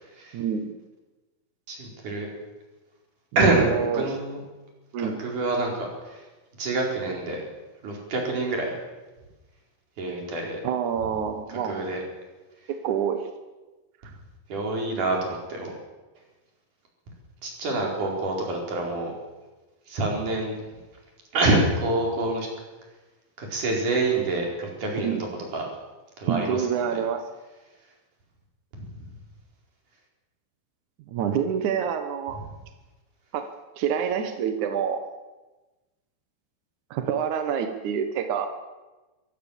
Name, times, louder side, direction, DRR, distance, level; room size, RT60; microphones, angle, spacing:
voice 1, 0.3-0.7 3.6-4.1 4.9-5.2 10.6-11.9 12.7-13.3 25.0-25.2 26.3-27.2 31.1-32.4 33.3-33.5 33.8-35.0 36.9-38.5, right 8 dB, 65° right, 7 dB, 2.0 m, -27 dB
voice 2, 1.7-2.3 3.4-3.7 3.9-4.4 5.0-6.2 6.6-7.4 7.8-8.8 10.0-10.6 11.7-12.0 14.5-15.7 17.4-19.2 19.9-20.6 21.3-22.5 23.4-25.2 25.5-25.7 26.2-27.0 28.7-28.9, right 2 dB, 45° right, 0 dB, 5.9 m, -26 dB
23.5 x 16.0 x 7.3 m, 1.2 s
omnidirectional pair, 5.1 m